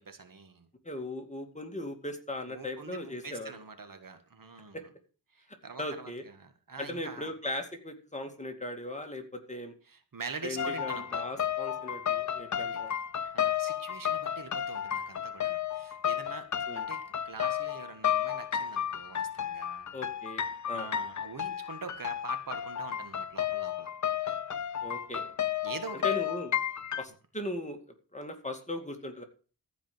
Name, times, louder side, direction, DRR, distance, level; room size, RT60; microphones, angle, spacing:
voice 1, 0.0-0.7 2.5-4.8 5.3-7.3 9.9-11.5 12.6-12.8 13.2-16.5 16.7-19.9 20.7-23.9 25.6-26.0, right 4 dB, 50° right, 8 dB, 1.7 m, -44 dB
voice 2, 0.8-3.5 4.7-4.8 5.8-6.2 6.8-9.7 10.4-12.9 16.7-16.9 19.9-20.9 24.8-25.3 26.0-26.5 27.0-27.8 28.1-29.2, left 1 dB, 15° left, 4 dB, 2.3 m, -38 dB
sound 1, 10.6-27.0, left 9 dB, 45° left, 0.6 m, -32 dB
14.5 x 5.1 x 7.8 m, 0.38 s
wide cardioid pair, 100°, 41 cm